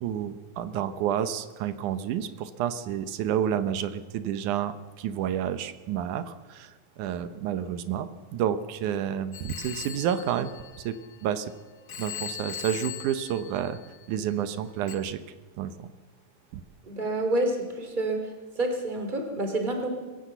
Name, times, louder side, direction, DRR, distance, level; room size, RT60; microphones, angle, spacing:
voice 1, 0.0-10.5 10.8-11.0 11.2-11.5 12.0-13.8 14.1-15.2 15.6-15.9 16.5-16.6, right 9 dB, 90° right, 12 dB, 2.4 m, -30 dB
Telephone, 9.3-11.4 11.9-14.2 14.9-15.0, left 9 dB, 50° left, 1.8 m, -40 dB
voice 2, 16.8-18.2 18.5-19.9, right 2 dB, 15° right, 5 dB, 2.7 m, -28 dB
21.5 x 16.0 x 8.1 m, 1.3 s
omnidirectional pair, 3.4 m